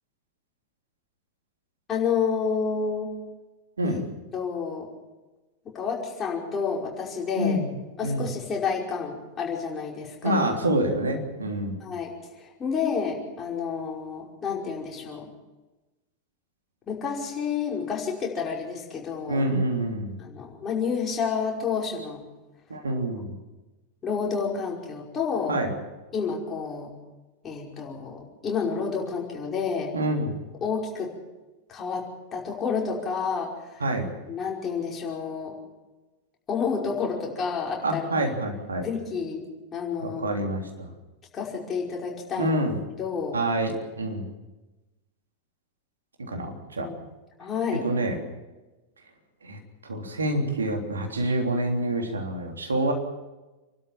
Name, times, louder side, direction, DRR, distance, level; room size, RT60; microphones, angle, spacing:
voice 1, 1.9-3.1 3.8-4.0 4.3-4.9 5.7-7.6 8.0-10.4 11.8-15.3 16.9-19.5 20.2-22.2 24.0-25.6 26.1-26.9 27.4-29.9 30.6-31.1 31.7-33.9 34.3-35.6 36.5-38.3 38.8-39.5 39.7-40.2 41.3-42.6 43.0-43.4 46.8-47.1 47.4-47.9, left 6 dB, 25° left, -1 dB, 5.4 m, -30 dB
voice 2, 7.4-7.7 8.0-8.3 10.2-11.7 19.3-20.2 22.7-23.3 25.5-25.7 29.9-30.3 33.8-34.1 37.8-38.9 40.0-40.9 42.4-42.8 43.3-44.3 46.3-46.9 47.8-48.2 49.4-49.6 49.9-52.9, right 1 dB, 75° right, 3 dB, 3.3 m, -27 dB
28.5 x 12.5 x 7.5 m, 1.1 s
figure-of-eight pair, 90°, 0 cm